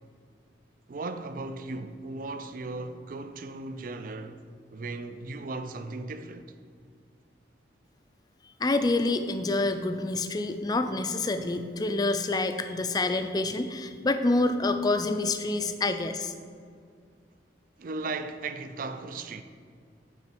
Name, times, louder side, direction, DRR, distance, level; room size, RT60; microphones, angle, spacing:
voice 1, 0.9-4.4 4.7-6.5 17.8-19.4, right 3 dB, 45° right, 0.4 m, -36 dB
voice 2, 8.6-16.3, left 2 dB, 20° left, 0.3 m, -27 dB
8.4 x 4.9 x 4.6 m
head